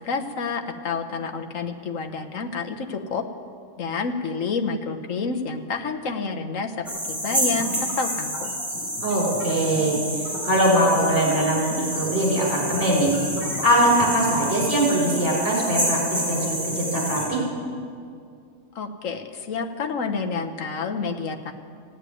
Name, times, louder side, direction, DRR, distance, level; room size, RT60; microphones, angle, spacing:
voice 1, 0.0-3.2 3.8-8.5 18.7-21.5, left 4 dB, 60° left, 5 dB, 1.3 m, -29 dB
sound 1, 6.9-17.3, equal, ahead, 4.9 m, -29 dB
voice 2, 9.0-13.1 13.6-17.4, right 1 dB, 40° right, -4 dB, 4.8 m, -22 dB
15.0 x 9.2 x 9.2 m, 2.3 s
omnidirectional pair, 1.6 m